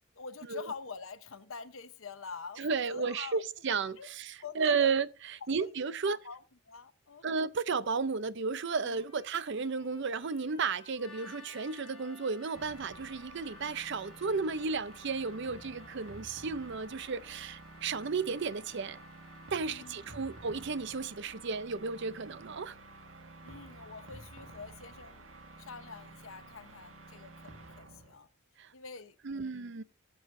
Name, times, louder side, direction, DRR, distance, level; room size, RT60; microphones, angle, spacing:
voice 1, 0.1-3.4 4.0-4.1 4.4-4.9 5.6-5.7 6.1-6.4 6.7-7.3 8.8-9.0 19.6-20.3 23.4-25.2 25.6-28.3 28.7-29.8, left 5 dB, 80° left, 0.9 m, -46 dB
voice 2, 2.6-6.2 7.2-19.0 19.5-22.8 28.6-28.7 29.2-29.8, right 5 dB, 60° right, 0.6 m, -33 dB
Trumpet, 8.6-16.2, left 3 dB, 30° left, 2.8 m, -60 dB
sound 1, 11.0-21.6, left 4 dB, 5° left, 3.2 m, -57 dB
sound 2, 12.5-28.2, right 2 dB, 80° right, 1.6 m, -51 dB
17.0 x 7.8 x 2.6 m
head